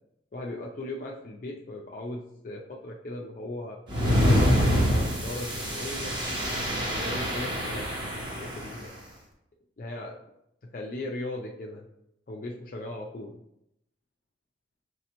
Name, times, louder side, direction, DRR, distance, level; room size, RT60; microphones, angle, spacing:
voice 1, 0.3-3.8 4.3-6.2 6.8-7.8 8.1-8.9 9.8-10.2 10.6-11.8 12.3-13.4, left 2 dB, 45° left, -1 dB, 0.4 m, -38 dB
sound 1, 3.9-8.8, equal, 25° right, 0.8 m, -26 dB
5.3 x 3.3 x 2.9 m, 0.80 s
head